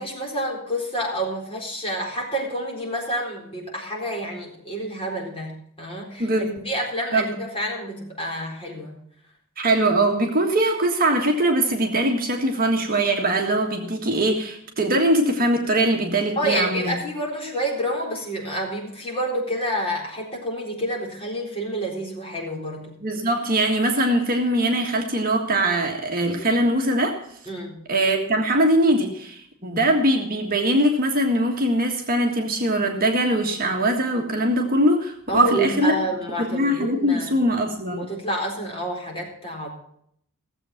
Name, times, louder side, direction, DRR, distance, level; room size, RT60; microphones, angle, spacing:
voice 1, 0.0-9.0 16.4-23.0 27.5-27.8 29.6-29.8 35.3-37.3 38.0-39.7, right 1 dB, 25° left, -2 dB, 4.0 m, -28 dB
voice 2, 6.2-6.5 7.1-7.3 9.6-16.9 23.0-27.2 27.9-35.9 36.4-38.1, right 1 dB, 40° right, 2 dB, 1.6 m, -21 dB
16.5 x 7.7 x 5.8 m, 0.69 s
head